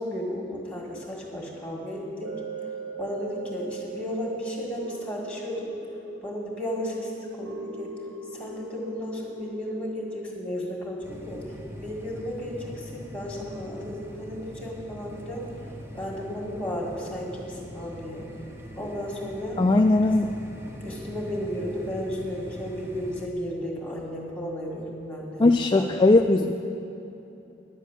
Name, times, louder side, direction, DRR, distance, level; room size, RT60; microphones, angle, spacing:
voice 1, 0.0-2.4 3.0-5.7 6.2-7.9 8.3-11.5 11.8-15.5 15.9-18.3 18.8-19.6 20.0-20.1 20.8-25.4 25.7-25.9, equal, 5° left, -2 dB, 1.9 m, -34 dB
sound 1, 2.2-12.6 13.0-13.1, right 3 dB, 70° right, 1.5 m, -41 dB
sound 2, 11.0-23.3, equal, 15° right, 0.7 m, -42 dB
voice 2, 19.6-20.3 25.4-26.5, left 2 dB, 25° left, 5 dB, 0.3 m, -19 dB
11.0 x 7.1 x 8.3 m, 3.0 s
head